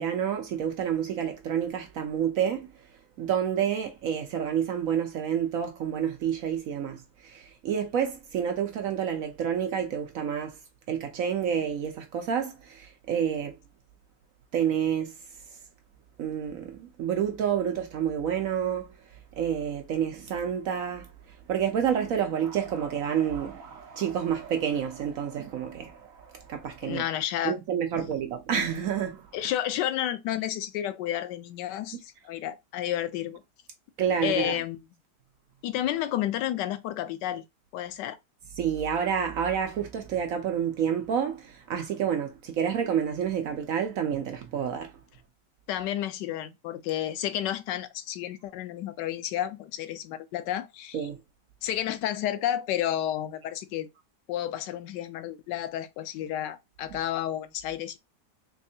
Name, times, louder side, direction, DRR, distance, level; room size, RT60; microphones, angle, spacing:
voice 1, 0.0-2.7 3.2-10.6 10.9-13.6 14.5-15.1 16.2-18.9 19.4-21.1 21.5-27.0 27.4-29.3 34.0-34.5 38.6-44.9 50.9-51.2, right 8 dB, 65° right, 0.8 m, -29 dB
voice 2, 26.8-27.6 29.3-33.4 34.2-34.8 35.6-37.4 37.7-38.2 45.7-51.0 51.6-53.9 54.3-58.0, left 12 dB, 90° left, 1.2 m, -31 dB
3.5 x 3.1 x 2.7 m
omnidirectional pair, 1.8 m